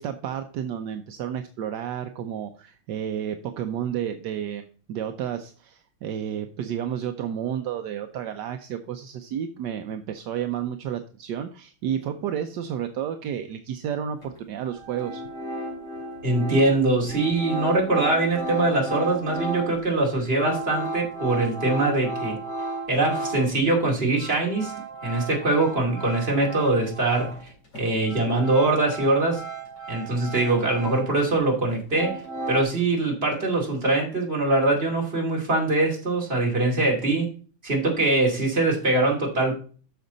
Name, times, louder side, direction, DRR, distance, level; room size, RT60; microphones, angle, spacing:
voice 1, 0.0-15.2, right 9 dB, 70° right, 7 dB, 1.1 m, -31 dB
sound 1, 14.2-14.3 14.7-23.6 23.9-27.5 27.7-31.4 31.7-32.6, right 2 dB, 50° left, 4.2 m, -34 dB
voice 2, 16.2-22.4 22.9-24.7 25.0-27.3 27.7-29.4 29.9-32.2 32.5-37.3 37.6-39.5, right 2 dB, 25° right, -1 dB, 2.8 m, -23 dB
9.5 x 6.4 x 3.9 m, 0.41 s
omnidirectional pair, 2.4 m